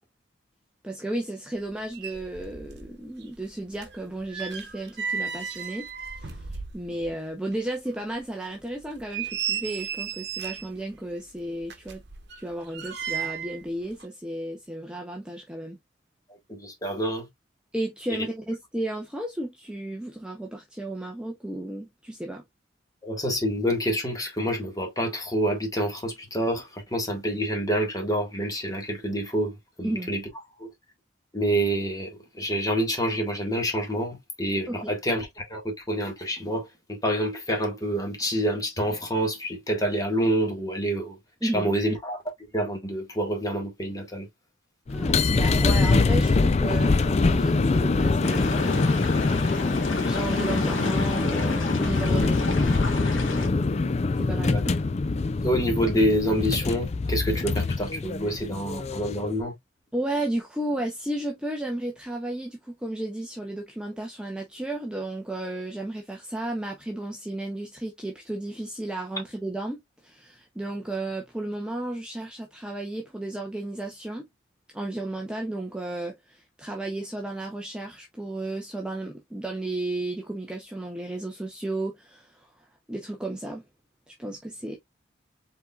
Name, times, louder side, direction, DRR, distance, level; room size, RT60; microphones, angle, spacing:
voice 1, 0.8-5.9 6.1-12.0 12.4-15.8 17.7-22.4 29.8-30.1 34.7-35.0 41.4-41.7 44.9-49.4 50.0-53.7 54.2-54.8 59.9-74.3 74.7-82.5 82.9-83.6 84.1-84.8, right 1 dB, 5° right, 0.7 m, -33 dB
sound 1, 1.7-1.8 1.9-2.9 3.2-7.2 7.5-7.6 8.2-8.3 8.8-10.8 11.6-13.6 13.9-14.1, right 7 dB, 55° right, 1.0 m, -34 dB
voice 2, 16.5-17.3 18.2-18.3 23.0-30.2 30.6-30.7 31.3-42.2 42.5-44.3 49.7-49.8 54.3-54.6 55.4-59.5, equal, 20° left, 1.7 m, -27 dB
sound 2, 44.9-59.3, left 3 dB, 35° left, 0.4 m, -24 dB
sound 3, 48.2-53.5, left 3 dB, 80° left, 1.8 m, -35 dB
4.9 x 4.0 x 2.4 m
head